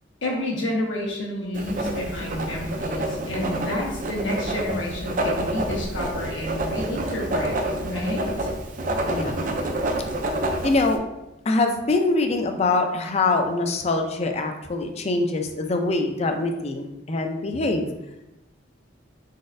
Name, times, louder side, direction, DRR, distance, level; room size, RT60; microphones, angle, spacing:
voice 1, 0.2-7.5 7.8-8.5, left 1 dB, 85° left, -3 dB, 1.2 m, -29 dB
Writing, 1.5-11.0, right 1 dB, 45° right, 0.4 m, -28 dB
voice 2, 9.0-9.4 10.6-11.0 11.5-17.9, left 3 dB, 35° left, 5 dB, 0.4 m, -24 dB
4.2 x 4.0 x 2.6 m, 0.95 s
head